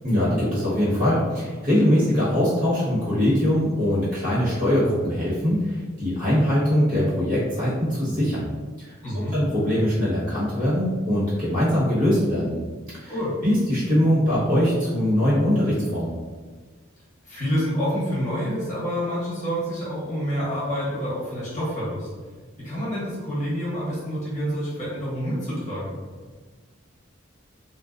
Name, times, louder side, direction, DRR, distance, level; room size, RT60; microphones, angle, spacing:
voice 1, 0.0-8.5 8.8-8.9 9.1-12.6 12.9-13.1 13.4-16.1, equal, 45° right, -9 dB, 1.2 m, -22 dB
voice 2, 9.0-9.3 13.1-13.3 17.2-22.1 22.6-25.9, equal, 40° left, -8 dB, 0.9 m, -28 dB
2.5 x 2.1 x 2.4 m, 1.4 s
head